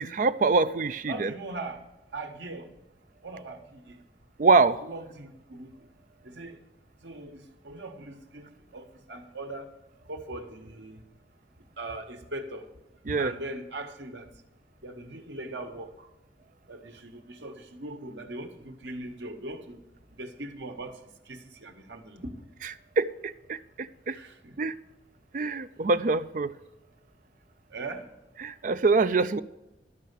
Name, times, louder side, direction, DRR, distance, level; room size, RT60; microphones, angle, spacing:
voice 1, 0.0-1.3 4.4-4.8 13.1-13.3 23.0-24.2 24.6-24.7 25.3-26.5 28.4-29.4, right 4 dB, 45° right, 0.4 m, -24 dB
voice 2, 1.1-2.7 3.2-4.0 4.8-5.9 6.2-6.6 7.0-8.5 8.7-9.7 10.1-11.0 11.8-12.7 13.1-14.3 14.8-16.1 16.7-19.8 20.1-22.4 24.1-24.7 25.8-25.9 27.7-28.1, right 2 dB, 85° right, 1.4 m, -40 dB
13.0 x 5.6 x 8.2 m
head